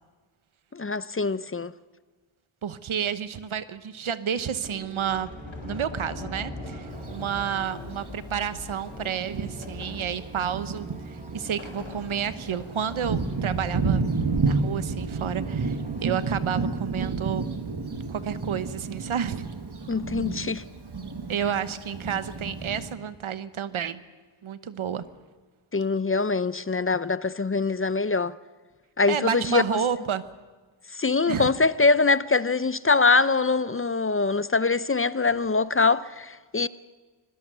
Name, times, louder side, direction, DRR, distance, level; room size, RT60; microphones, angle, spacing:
voice 1, 0.7-1.7 19.9-20.6 25.7-28.3 29.0-29.6 30.9-36.7, left 4 dB, 25° left, 0.7 m, -23 dB
voice 2, 2.6-5.3 5.6-14.0 14.4-17.4 18.1-19.5 21.3-24.0 24.4-25.0 29.1-30.2 31.3-31.5, right 8 dB, 75° right, 1.1 m, -30 dB
Sliding door, 4.6-13.8, left 2 dB, 70° left, 5.2 m, -42 dB
sound 1, 4.6-17.7, right 2 dB, 15° right, 1.2 m, -46 dB
Thunder, 6.9-7.1 8.0-8.1 8.7-8.8 9.2-22.9, right 4 dB, 55° right, 2.0 m, -31 dB
25.0 x 17.0 x 6.9 m
cardioid pair, 40°, 49 cm